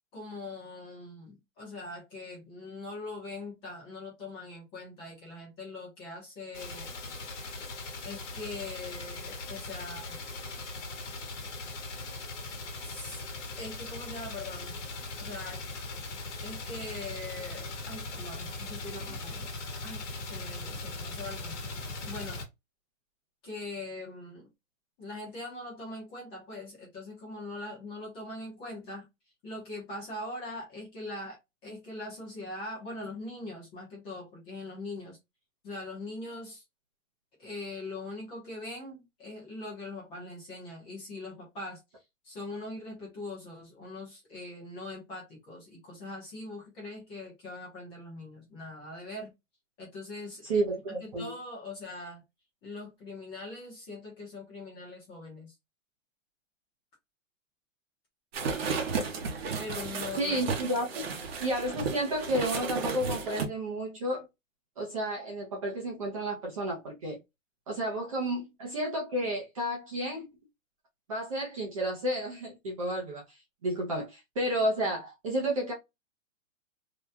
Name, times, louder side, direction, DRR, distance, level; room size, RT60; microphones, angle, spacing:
voice 1, 0.1-6.9 8.0-10.2 12.8-13.2 13.6-14.8 15.2-15.6 16.4-19.5 19.8-20.0 20.3-21.6 22.0-22.5 23.4-24.5 25.0-29.1 29.4-35.2 35.6-36.6 37.4-41.8 42.2-49.3 49.8-50.4 51.0-52.2 52.6-55.5 59.6-60.4 61.1-61.2, left 2 dB, 15° left, 0.9 m, -42 dB
sound 1, 6.5-22.4, left 3 dB, 60° left, 1.2 m, -39 dB
voice 2, 50.4-51.3 60.2-61.0 61.4-64.3 64.8-67.2 67.7-70.3 71.1-75.7, right 1 dB, 25° right, 0.7 m, -31 dB
sound 2, 58.3-63.4, right 5 dB, 50° right, 0.9 m, -33 dB
2.9 x 2.3 x 3.4 m
hypercardioid pair, 170°, 39 cm